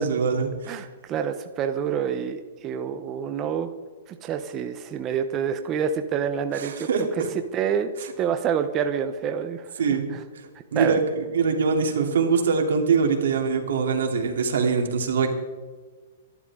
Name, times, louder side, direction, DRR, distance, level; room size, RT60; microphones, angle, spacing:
voice 1, 0.0-0.7 6.5-7.3 9.8-10.0 10.3-11.0 11.3-15.3, right 5 dB, 85° right, 3 dB, 3.2 m, -23 dB
voice 2, 0.7-3.7 4.1-7.2 7.5-9.7 10.1-10.2 10.7-11.0, right 7 dB, 20° right, 7 dB, 0.8 m, -27 dB
24.0 x 12.0 x 3.8 m, 1.3 s
hypercardioid pair, 165°, 0 cm